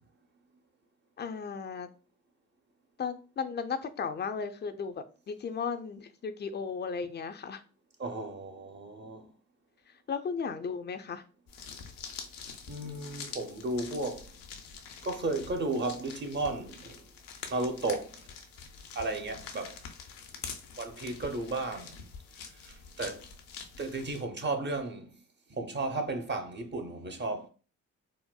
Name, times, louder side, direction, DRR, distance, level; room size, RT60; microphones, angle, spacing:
voice 1, 1.2-1.9 3.0-7.6 10.1-11.2, left 5 dB, 30° left, 0.5 m, -35 dB
voice 2, 8.0-9.3 12.7-14.3 15.0-17.1 17.5-18.2 18.9-19.8 20.8-22.1 22.4-23.3 23.8-25.2 25.5-27.5, right 2 dB, 30° right, 0.7 m, -34 dB
sound 1, 11.5-24.2, left 6 dB, 80° left, 0.6 m, -46 dB
4.2 x 2.1 x 2.2 m
hypercardioid pair, 45°, 34 cm